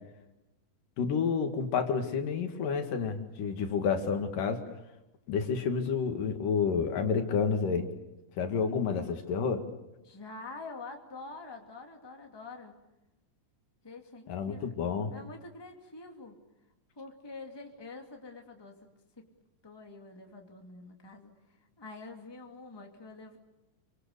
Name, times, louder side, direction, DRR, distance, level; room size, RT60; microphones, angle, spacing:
voice 1, 1.0-4.6 5.3-7.9 8.4-9.7 14.3-15.1, left 6 dB, 80° left, 6 dB, 3.6 m, -29 dB
voice 2, 10.0-12.7 13.8-14.7 15.1-16.4 17.0-18.7 19.2-19.3 19.6-21.3 21.8-23.4, left 3 dB, 10° left, 3 dB, 2.2 m, -46 dB
28.0 x 25.5 x 6.8 m, 0.96 s
omnidirectional pair, 3.8 m